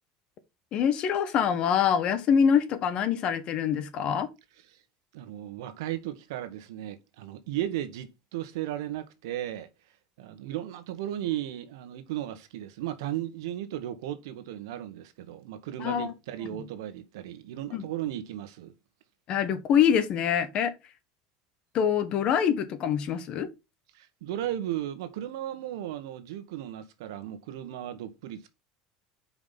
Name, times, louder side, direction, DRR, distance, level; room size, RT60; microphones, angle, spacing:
voice 1, 0.7-4.3 15.8-16.1 17.7-17.8 19.3-20.7 21.7-23.5, left 8 dB, 50° left, 1.3 m, -25 dB
voice 2, 5.1-18.7 23.9-28.5, right 12 dB, 85° right, 1.2 m, -36 dB
5.4 x 4.8 x 5.8 m
supercardioid pair, 110°, 2 cm